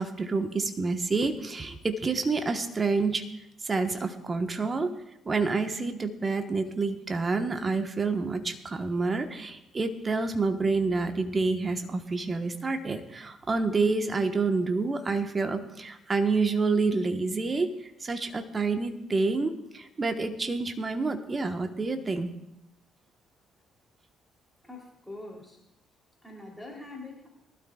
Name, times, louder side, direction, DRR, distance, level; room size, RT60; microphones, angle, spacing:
voice 1, 0.0-3.2 3.6-4.9 5.3-17.7 18.0-22.3, right 3 dB, 35° right, 6 dB, 1.3 m, -28 dB
voice 2, 24.6-25.6 26.2-27.3, left 2 dB, 5° left, -2 dB, 3.6 m, -43 dB
23.0 x 12.5 x 2.5 m, 0.84 s
hypercardioid pair, 45°, 0 cm